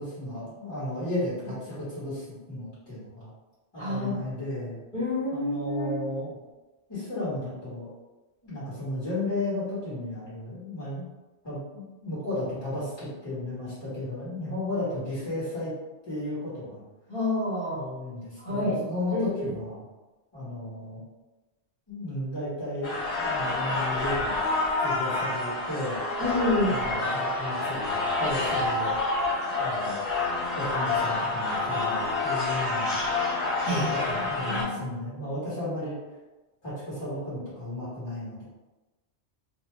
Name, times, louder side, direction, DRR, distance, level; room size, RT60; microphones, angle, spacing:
voice 1, 0.0-3.3 3.7-4.8 5.3-6.4 6.9-7.9 8.4-11.0 11.4-15.7 16.0-16.8 17.7-19.8 20.3-21.0 21.9-24.4 24.8-26.0 26.6-28.9 29.6-30.0 30.5-33.0 33.7-35.9 36.6-38.4, left 1 dB, 20° left, -11 dB, 1.5 m, -34 dB
voice 2, 3.8-4.2 4.9-6.0 17.1-17.8 18.4-18.8 19.1-19.3 26.2-26.8 33.6-33.9 34.5-34.8, left 1 dB, 40° left, -12 dB, 1.6 m, -28 dB
sound 1, 22.8-34.6, left 2 dB, 70° left, 1.1 m, -28 dB
2.8 x 2.2 x 3.2 m, 1.1 s
omnidirectional pair, 1.2 m